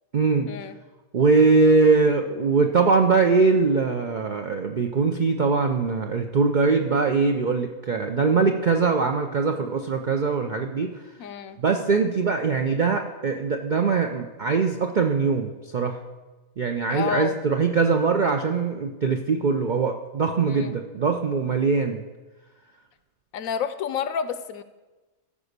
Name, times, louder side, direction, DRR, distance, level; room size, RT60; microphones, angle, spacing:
voice 1, 0.1-0.5 1.1-10.9 11.6-16.0 16.6-22.1, right 4 dB, 60° right, 4 dB, 0.4 m, -22 dB
voice 2, 11.2-11.6 16.9-17.3 20.5-20.8 23.3-24.6, left 7 dB, 70° left, 12 dB, 1.0 m, -29 dB
14.0 x 5.0 x 6.6 m, 1.2 s
omnidirectional pair, 1.6 m